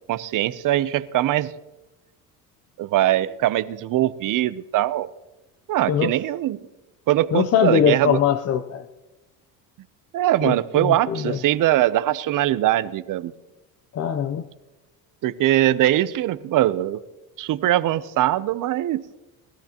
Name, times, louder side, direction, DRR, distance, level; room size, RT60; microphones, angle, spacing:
voice 1, 0.1-1.5 2.8-5.1 5.7-6.6 7.1-8.2 10.1-13.3 15.2-17.0 17.4-19.0, right 14 dB, 55° right, 16 dB, 0.7 m, -21 dB
voice 2, 7.3-8.8 10.4-11.4 13.9-14.4, left 8 dB, 40° left, 9 dB, 0.6 m, -22 dB
20.5 x 13.0 x 2.9 m, 1.1 s
cardioid pair, 110°, 38 cm